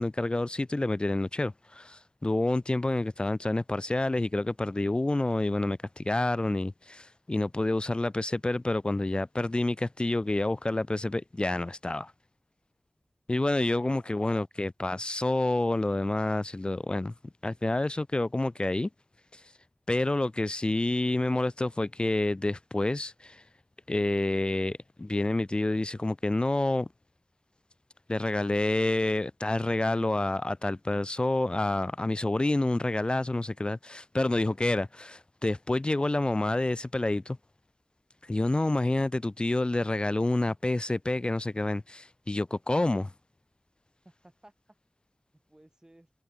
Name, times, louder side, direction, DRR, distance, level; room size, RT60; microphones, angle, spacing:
voice 1, 0.0-12.1 13.3-17.1 17.4-18.9 19.9-23.4 23.9-26.9 28.1-37.4 38.3-43.1, left 2 dB, 25° left, 0.3 m, -28 dB
voice 2, 13.7-14.5 44.0-44.5 45.3-46.1, right 1 dB, 20° right, 2.6 m, -58 dB
wide cardioid pair, 75°, 4 cm